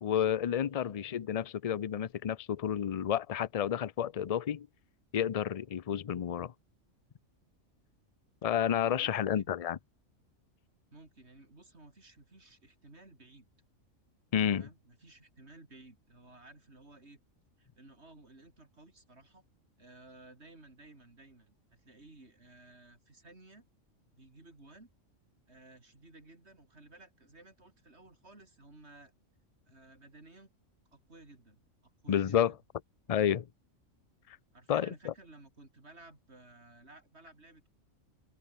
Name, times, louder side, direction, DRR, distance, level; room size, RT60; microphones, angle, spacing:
voice 1, 0.0-4.7 5.1-6.5 8.4-9.8 14.3-14.7 32.1-32.5 33.1-33.5 34.7-35.1, left 9 dB, 50° left, 0.4 m, -30 dB
voice 2, 8.8-9.5 10.9-13.5 14.6-17.2 17.6-19.4 19.8-23.7 24.1-24.9 25.5-29.1 29.7-30.5 30.9-32.6 34.5-37.7, right 2 dB, 55° right, 4.7 m, -56 dB
omnidirectional pair, 1.4 m